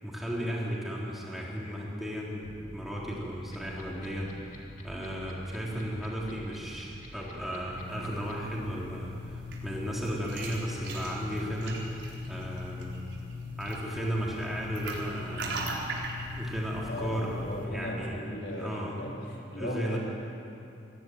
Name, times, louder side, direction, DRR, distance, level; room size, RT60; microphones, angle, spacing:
voice 1, 0.0-2.5 2.7-4.3 4.8-11.9 12.3-12.9 13.6-15.5 16.3-18.2 18.6-19.1 19.6-20.0, equal, ahead, -4 dB, 3.7 m, -35 dB
sound 1, 2.4-7.9, right 1 dB, 35° right, 1.4 m, -48 dB
sound 2, 3.5-8.3, left 5 dB, 40° left, 2.9 m, -52 dB
sound 3, 7.7-17.7, left 1 dB, 85° right, 4.1 m, -38 dB
voice 2, 16.9-20.0, left 1 dB, 65° left, -2 dB, 3.9 m, -37 dB
21.5 x 15.5 x 9.3 m, 2.7 s
head